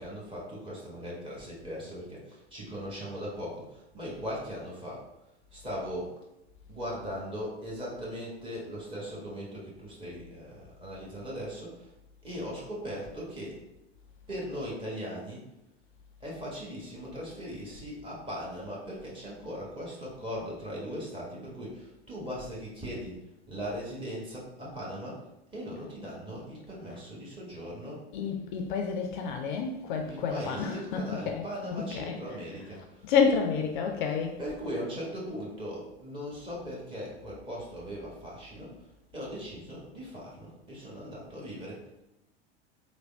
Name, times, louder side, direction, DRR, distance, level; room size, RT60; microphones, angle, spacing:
voice 1, 0.0-5.0 5.5-6.1 6.7-11.9 12.2-13.6 14.3-15.4 16.2-23.2 23.5-25.2 25.5-28.0 30.0-33.0 34.4-38.8 39.1-41.9, equal, 15° right, 1.2 m, -39 dB
voice 2, 28.1-34.4, left 6 dB, 50° left, 0.4 m, -30 dB
3.3 x 2.1 x 3.3 m
figure-of-eight pair, 80°, 32 cm